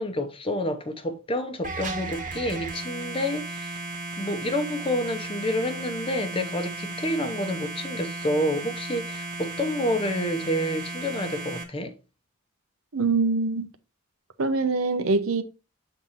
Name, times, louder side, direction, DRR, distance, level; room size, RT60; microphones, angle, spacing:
voice 1, 0.0-3.9 4.2-11.9, left 1 dB, 25° left, 0.8 m, -29 dB
sound 1, 1.6-11.6, right 2 dB, 35° right, 1.2 m, -35 dB
voice 2, 12.9-13.7 14.4-15.4, right 3 dB, 75° right, 0.8 m, -24 dB
7.2 x 3.8 x 4.3 m
head